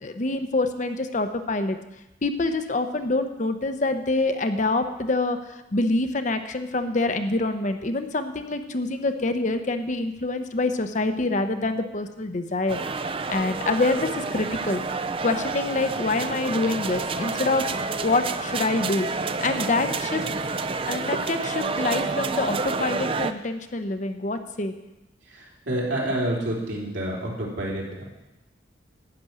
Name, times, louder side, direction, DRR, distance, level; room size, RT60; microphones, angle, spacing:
voice 1, 0.0-1.8 2.2-12.8 13.3-14.8 15.2-17.7 18.0-19.1 19.4-20.2 20.9-24.7, left 2 dB, 40° left, 8 dB, 0.7 m, -26 dB
sound 1, 12.7-23.3, right 4 dB, 30° right, 0.4 m, -29 dB
voice 2, 25.3-28.0, right 1 dB, 80° right, -3 dB, 3.7 m, -28 dB
12.0 x 6.1 x 9.0 m, 0.96 s
head